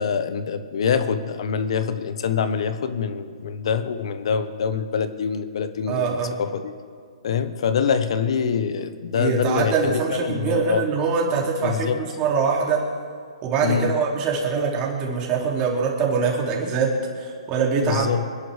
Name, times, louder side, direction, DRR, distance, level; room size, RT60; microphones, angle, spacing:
voice 1, 0.0-6.1 6.4-6.7 7.2-10.8 11.6-12.0 13.6-13.9 17.8-18.2, left 6 dB, 60° left, 10 dB, 1.2 m, -25 dB
voice 2, 5.9-6.4 9.1-12.9 13.4-18.1, right 5 dB, 25° right, -1 dB, 2.8 m, -23 dB
25.0 x 11.0 x 3.5 m, 2.2 s
hypercardioid pair, 155°, 3 cm